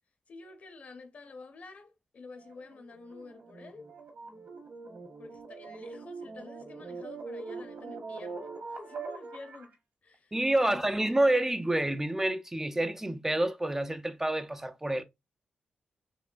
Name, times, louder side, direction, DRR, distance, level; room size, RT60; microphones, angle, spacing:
voice 1, 0.3-3.9 5.2-9.7 10.0-10.9, left 3 dB, 55° left, 0.9 m, -49 dB
sound 1, 2.4-9.7, right 4 dB, 70° right, 1.5 m, -43 dB
voice 2, 10.3-15.0, right 1 dB, 15° right, 0.3 m, -28 dB
4.2 x 3.1 x 2.5 m
wide cardioid pair, 110°, 3 cm